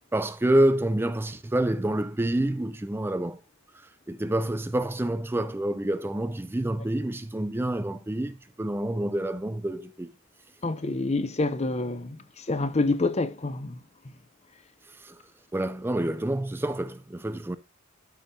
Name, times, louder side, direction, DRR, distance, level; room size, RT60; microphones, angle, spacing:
voice 1, 0.1-3.4 3.7-10.1 14.9-15.2 15.5-17.6, right 1 dB, 10° right, 0.4 m, -28 dB
voice 2, 10.6-13.8, left 2 dB, 30° left, 0.6 m, -27 dB
13.0 x 5.5 x 2.7 m
head